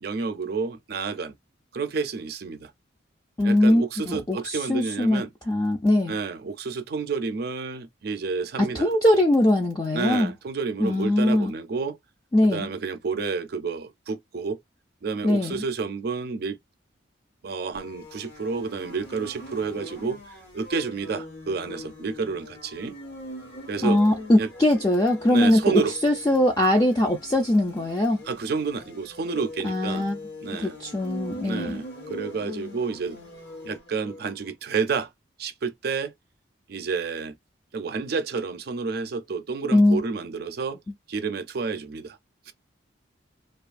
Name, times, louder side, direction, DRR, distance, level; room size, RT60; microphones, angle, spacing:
voice 1, 0.0-1.3 1.7-2.7 3.4-5.3 6.1-8.9 9.9-12.0 12.4-14.6 15.0-16.6 17.4-23.0 23.7-24.0 24.4-24.5 25.3-25.9 28.2-30.1 30.4-30.8 31.4-33.2 33.6-35.1 35.4-36.1 36.7-37.4 37.7-40.8 41.1-42.2 42.5-42.6, right 4 dB, 50° right, 0.4 m, -30 dB
voice 2, 3.4-6.2 8.6-10.3 10.8-11.5 12.3-12.7 15.2-15.6 23.8-28.2 29.6-30.2 30.6-31.8 39.7-40.0, left 1 dB, 20° left, 0.4 m, -21 dB
sound 1, 17.7-34.3, left 1 dB, 60° left, 1.1 m, -42 dB
2.6 x 2.4 x 2.4 m
head